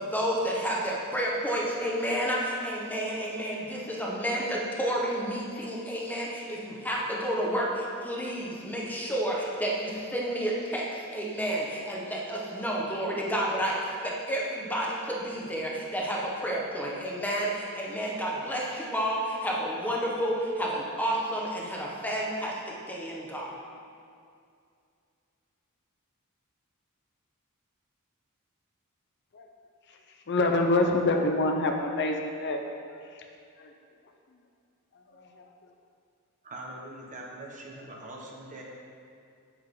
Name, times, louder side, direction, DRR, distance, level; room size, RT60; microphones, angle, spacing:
voice 1, 0.0-23.5, equal, 10° left, -4 dB, 1.3 m, -30 dB
voice 2, 30.3-33.2 33.6-33.7 34.9-35.4, left 2 dB, 55° left, 3 dB, 0.7 m, -27 dB
voice 3, 36.4-38.6, right 1 dB, 35° right, -2 dB, 1.4 m, -42 dB
8.9 x 8.0 x 3.8 m, 2.4 s
head